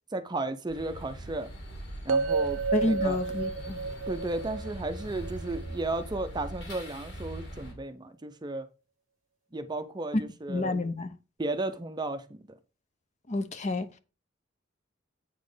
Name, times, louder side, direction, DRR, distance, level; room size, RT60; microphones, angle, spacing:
voice 1, 0.1-1.5 2.0-3.2 4.1-8.7 9.5-10.8 11.4-12.4, right 2 dB, 20° right, 0.5 m, -34 dB
sound 1, 0.7-7.7, right 1 dB, 65° left, 2.4 m, -41 dB
sound 2, 2.1-6.2, right 4 dB, 85° right, 0.5 m, -31 dB
voice 2, 2.7-3.8 10.1-10.2 10.5-11.1 13.3-14.0, left 2 dB, 35° left, 0.7 m, -29 dB
8.4 x 4.2 x 5.0 m
head